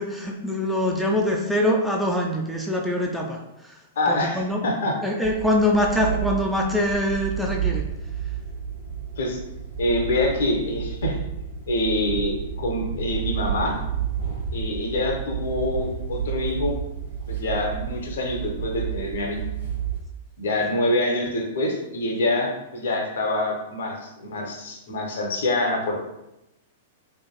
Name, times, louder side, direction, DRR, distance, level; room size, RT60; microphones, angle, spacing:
voice 1, 0.0-7.9, left 1 dB, ahead, -1 dB, 0.3 m, -24 dB
voice 2, 4.0-4.9 9.2-9.4 9.8-11.2 11.7-13.8 14.5-16.8 17.3-19.4 20.4-26.0, left 1 dB, 65° left, 1 dB, 0.6 m, -25 dB
sound 1, 5.2-20.0, right 8 dB, 70° right, 0.8 m, -31 dB
3.0 x 2.4 x 2.2 m, 0.90 s
figure-of-eight pair, 100°, 0 cm